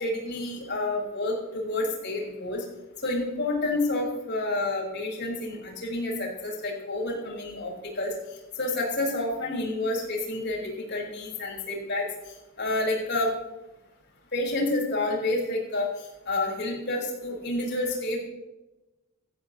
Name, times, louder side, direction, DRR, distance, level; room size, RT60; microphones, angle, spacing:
voice 1, 0.0-2.6 3.0-8.1 8.6-12.1 12.6-13.3 14.3-18.2, left 2 dB, 55° left, -2 dB, 6.0 m, -29 dB
17.5 x 15.0 x 3.3 m, 1.0 s
head